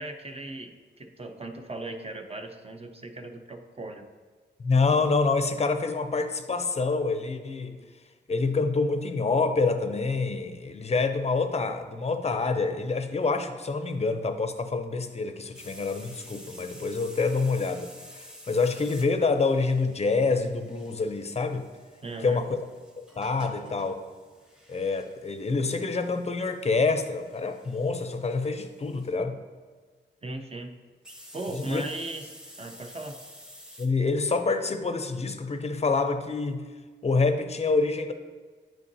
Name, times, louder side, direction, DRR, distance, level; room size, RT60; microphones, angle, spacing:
voice 1, 0.0-4.1 22.0-22.4 30.2-30.7 31.3-33.2, right 2 dB, 30° right, 5 dB, 0.6 m, -38 dB
voice 2, 4.6-7.8 8.3-21.7 22.2-22.6 23.2-24.0 24.7-29.4 31.7-31.8 33.8-36.7 37.0-38.1, left 4 dB, 35° left, 8 dB, 0.5 m, -27 dB
sound 1, 15.5-29.1 31.0-33.9, equal, 5° right, 0.9 m, -50 dB
8.8 x 5.6 x 2.7 m, 1.5 s
wide cardioid pair, 80°, 19 cm